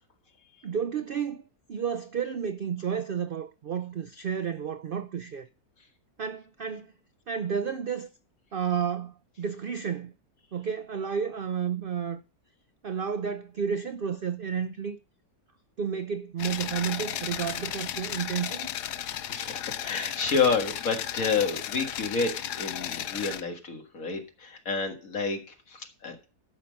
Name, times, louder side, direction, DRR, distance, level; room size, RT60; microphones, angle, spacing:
voice 1, 0.6-5.5 6.2-6.9 7.3-8.1 8.5-10.1 10.5-12.2 12.8-15.0 15.8-18.8, right 7 dB, 80° right, 0.4 m, -31 dB
sound 1, 16.4-23.4, left 10 dB, 85° left, 1.3 m, -34 dB
voice 2, 19.3-26.3, left 5 dB, 60° left, 2.2 m, -29 dB
13.0 x 5.8 x 5.2 m
omnidirectional pair, 1.7 m